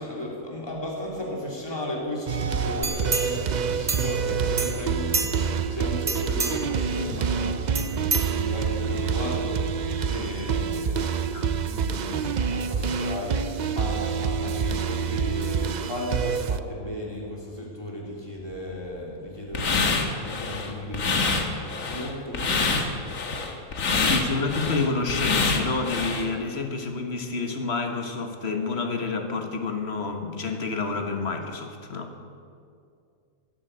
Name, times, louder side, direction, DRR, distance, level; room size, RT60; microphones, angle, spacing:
voice 1, 0.0-23.0, left 1 dB, 15° left, -3 dB, 3.1 m, -35 dB
sound 1, 2.3-16.6, right 6 dB, 65° right, 0.4 m, -27 dB
sound 2, 2.8-4.3 4.6-5.6 6.0-6.8 7.7-8.9 9.3-9.4, right 4 dB, 30° right, 0.8 m, -30 dB
sound 3, 19.5-26.3, left 4 dB, 65° left, 1.8 m, -26 dB
voice 2, 23.9-32.1, left 4 dB, 45° left, 5 dB, 1.6 m, -29 dB
17.0 x 10.5 x 7.9 m, 2.4 s
omnidirectional pair, 1.5 m